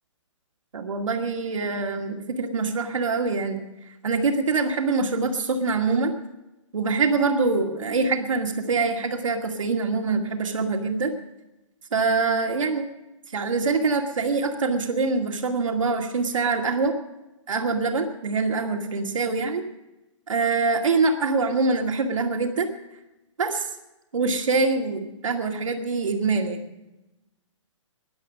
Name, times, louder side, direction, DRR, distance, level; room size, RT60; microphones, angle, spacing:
voice 1, 0.7-3.6 4.0-6.1 6.7-11.1 11.9-12.9 13.3-16.9 17.5-19.6 20.3-22.7 23.4-23.7 24.1-26.6, right 4 dB, 85° right, 3 dB, 2.2 m, -24 dB
15.0 x 11.0 x 7.2 m, 0.96 s
hypercardioid pair, 160°, 16 cm